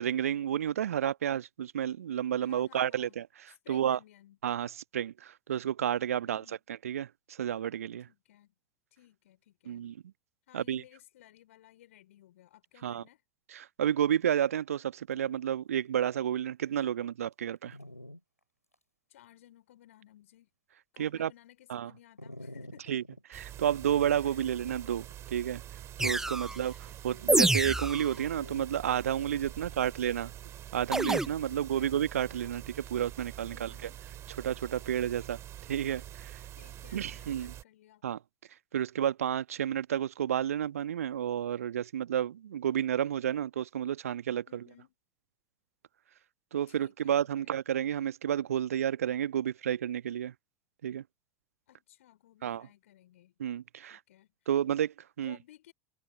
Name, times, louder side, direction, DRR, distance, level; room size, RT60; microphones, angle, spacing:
voice 1, 0.0-3.2 3.7-4.0 4.4-8.1 9.7-10.0 10.5-10.8 12.8-13.0 13.5-17.8 21.0-21.3 21.7-21.9 22.9-23.0 23.3-25.6 26.0-26.7 27.0-30.3 30.7-33.7 34.4-35.4 35.7-36.3 36.9-37.5 38.0-38.2 38.7-44.4 46.5-50.3 50.8-51.0 52.4-52.7 53.4-54.0 54.5-55.4, right 10 dB, 70° right, 1.2 m, -31 dB
voice 2, 2.4-3.1 3.5-4.4 6.2-6.6 8.1-8.5 8.9-9.9 10.5-13.2 19.1-20.5 20.9-23.0 24.2-24.5 26.2-27.3 29.5-30.1 31.5-32.0 33.5-34.0 34.8-35.3 36.6-38.0 44.5-45.0 46.7-47.2 47.4-47.6 51.7-53.3 53.9-54.5 55.2-55.7, left 13 dB, 65° left, 4.7 m, -58 dB
Dog, 14.7-14.8 15.1-15.4 16.0-16.1 16.8-16.9 17.7-18.2 18.7-18.8 22.2-23.2 24.7-25.2 28.1-28.7, left 1 dB, 90° left, 3.2 m, -47 dB
sound 1, 23.3-37.6, right 12 dB, 35° right, 2.7 m, -46 dB
sound 2, 26.0-26.6 27.3-28.1 30.9-31.3, right 2 dB, 5° right, 0.5 m, -27 dB
figure-of-eight pair, 80°, 8 cm